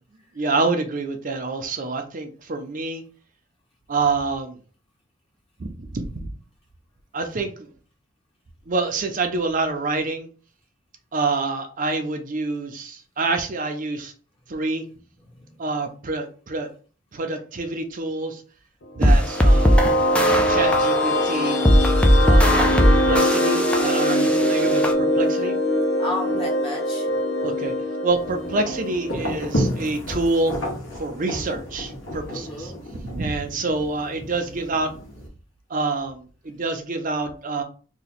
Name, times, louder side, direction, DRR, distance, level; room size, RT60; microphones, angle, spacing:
voice 1, 0.3-3.0 3.9-4.6 5.6-6.2 7.1-7.7 8.7-10.3 11.1-14.1 14.5-14.8 15.6-16.7 17.1-18.4 18.9-20.0 20.3-21.6 22.2-25.5 27.4-27.8 28.0-30.5 31.0-32.7 33.0-34.9 35.7-37.6, right 3 dB, 45° right, 0.6 m, -27 dB
voice 2, 15.3-15.7 24.2-24.6 26.0-27.1 32.3-32.8, left 1 dB, 30° left, 0.9 m, -33 dB
sound 1, 19.0-29.9, equal, 90° left, 0.8 m, -23 dB
sound 2, 19.0-24.9, equal, 5° left, 0.4 m, -19 dB
sound 3, 28.1-35.3, equal, 70° left, 1.2 m, -32 dB
2.8 x 2.2 x 4.1 m
head